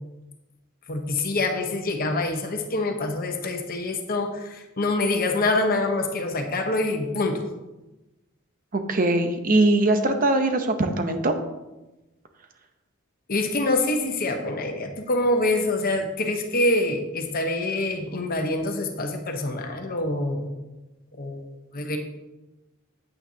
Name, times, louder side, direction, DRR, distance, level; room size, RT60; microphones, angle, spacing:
voice 1, 0.9-7.4 13.3-20.5 21.1-21.5 21.7-22.0, left 2 dB, 45° left, 4 dB, 0.9 m, -25 dB
voice 2, 8.7-11.3, right 2 dB, 40° right, 7 dB, 0.8 m, -21 dB
8.9 x 8.7 x 2.8 m, 1.0 s
head